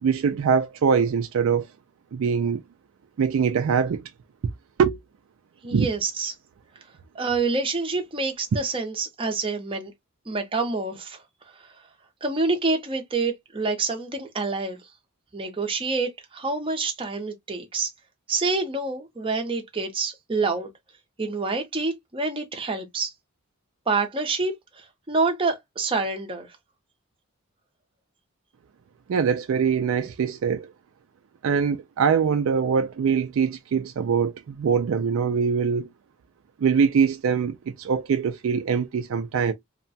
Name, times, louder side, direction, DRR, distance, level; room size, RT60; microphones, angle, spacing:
voice 1, 0.0-1.7 2.1-2.6 3.2-4.1 4.8-5.0 5.7-5.9 29.1-30.7 31.4-35.9 36.6-39.5, right 6 dB, 60° right, 0.3 m, -23 dB
voice 2, 5.6-6.3 7.1-9.9 10.3-11.2 12.2-14.8 15.3-17.9 18.3-20.7 21.2-23.1 23.9-26.5, right 3 dB, 25° right, 0.7 m, -27 dB
2.8 x 2.2 x 2.6 m
head